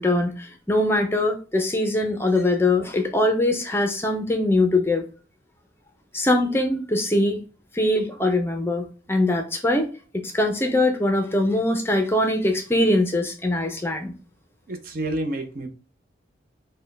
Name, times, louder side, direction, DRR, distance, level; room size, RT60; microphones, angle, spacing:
voice 1, 0.0-5.0 6.1-7.4 7.7-9.9 10.1-14.1, left 1 dB, 15° left, 5 dB, 0.5 m, -22 dB
voice 2, 14.7-15.7, right 1 dB, 50° right, 6 dB, 0.6 m, -29 dB
4.2 x 2.2 x 3.3 m, 0.35 s
head